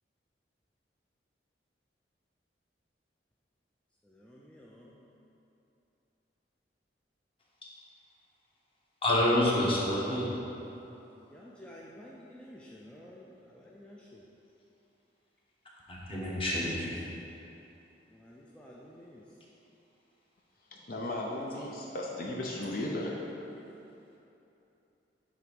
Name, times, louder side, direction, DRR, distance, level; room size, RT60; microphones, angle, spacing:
voice 1, 4.0-5.0 11.1-14.2 18.1-19.2, equal, 5° left, -5 dB, 0.4 m, -52 dB
voice 2, 9.0-10.3 15.9-16.9, left 1 dB, 30° left, -5 dB, 1.2 m, -27 dB
voice 3, 20.9-23.2, left 1 dB, 50° left, -2 dB, 0.6 m, -35 dB
7.6 x 3.4 x 5.3 m, 2.9 s
head